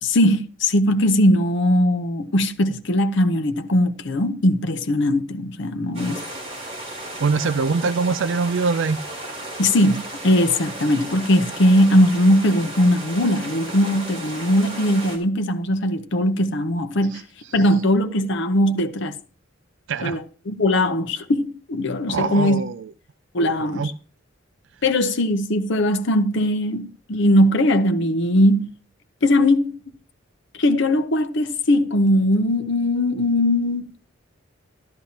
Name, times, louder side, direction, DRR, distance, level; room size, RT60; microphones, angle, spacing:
voice 1, 0.0-6.2 9.6-17.2 17.5-19.2 20.0-22.6 23.3-23.9 24.8-28.7 29.2-29.9 30.5-34.0, left 1 dB, 65° left, 0.8 m, -20 dB
sound 1, 5.9-15.2, right 1 dB, 30° right, 3.7 m, -34 dB
voice 2, 7.2-9.0 17.1-17.2 17.5-17.7 19.9-20.2 22.1-22.9 23.6-23.9, right 4 dB, 65° right, 0.4 m, -23 dB
13.0 x 11.5 x 2.9 m
head